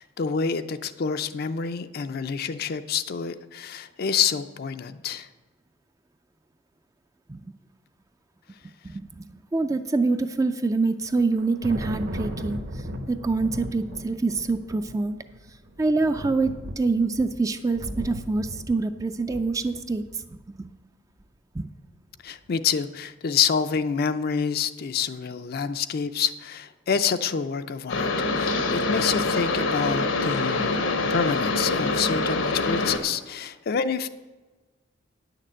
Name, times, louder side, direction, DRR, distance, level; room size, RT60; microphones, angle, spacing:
voice 1, 0.0-5.3 22.2-30.8 31.1-34.1, left 6 dB, 50° left, 10 dB, 0.4 m, -27 dB
voice 2, 8.8-15.2 15.8-20.0 20.3-20.7 21.5-21.7, right 3 dB, 15° right, 9 dB, 0.3 m, -26 dB
Thunder, 11.0-20.5, equal, 55° right, 1.0 m, -37 dB
sound 1, 27.9-33.0, left 3 dB, 80° left, 1.0 m, -25 dB
9.7 x 6.6 x 7.4 m, 1.3 s
head